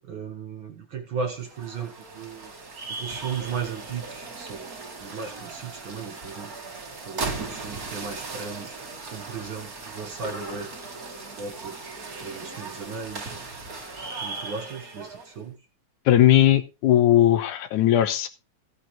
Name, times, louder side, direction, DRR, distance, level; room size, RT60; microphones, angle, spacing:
voice 1, 0.0-2.5 2.9-6.5 7.0-8.8 9.1-10.8 11.4-11.8 12.2-13.4 14.2-15.7, right 5 dB, 55° right, 1.6 m, -36 dB
sound 1, 1.3-15.4, right 3 dB, 30° right, 2.2 m, -37 dB
voice 2, 16.1-18.3, left 12 dB, 80° left, 2.5 m, -18 dB
16.0 x 8.8 x 3.1 m
omnidirectional pair, 3.5 m